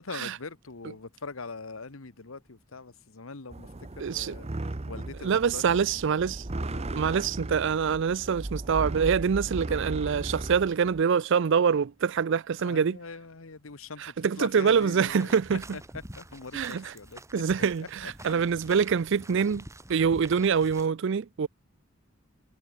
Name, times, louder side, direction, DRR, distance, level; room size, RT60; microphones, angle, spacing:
voice 1, 0.0-5.9 6.6-6.9 12.6-15.8 16.2-17.2 17.6-17.7 18.0-18.5, left 4 dB, 85° left, 1.3 m, -42 dB
sound 1, 3.5-11.0, right 2 dB, 30° right, 0.9 m, -36 dB
voice 2, 4.0-4.4 5.2-6.5 6.9-13.0 14.0-15.8 16.5-16.9 17.3-21.5, right 6 dB, 60° right, 0.4 m, -25 dB
sound 2, 14.7-20.9, right 1 dB, 15° right, 2.2 m, -47 dB
head